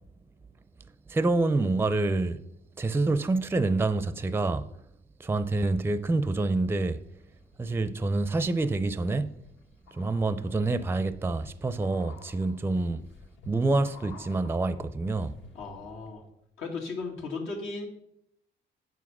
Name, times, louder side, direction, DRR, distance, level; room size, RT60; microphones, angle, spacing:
voice 1, 1.1-2.4 2.8-4.7 5.2-7.0 7.6-9.3 9.9-13.0 13.5-15.4, right 3 dB, 10° right, 0.4 m, -27 dB
sound 1, 6.9-7.6 8.0-15.9 16.2-16.3, left 5 dB, 70° left, 1.2 m, -53 dB
voice 2, 15.5-16.2 16.6-17.9, left 3 dB, 85° left, 2.1 m, -36 dB
7.8 x 4.9 x 6.0 m
cardioid pair, 90°, 20 cm